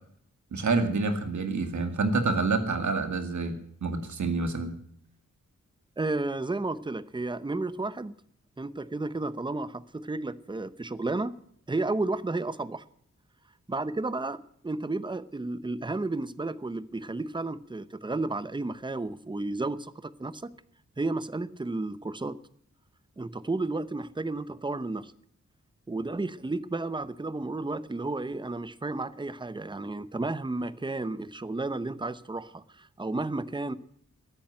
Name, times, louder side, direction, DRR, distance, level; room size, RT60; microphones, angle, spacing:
voice 1, 0.5-4.7, right 3 dB, 75° right, 7 dB, 2.1 m, -28 dB
voice 2, 6.0-8.1 8.6-11.3 11.7-12.8 13.7-20.5 21.0-22.4 23.2-25.1 25.9-33.8, right 2 dB, 15° right, 15 dB, 0.7 m, -32 dB
13.5 x 8.9 x 9.5 m, 0.65 s
wide cardioid pair, 110°, 29 cm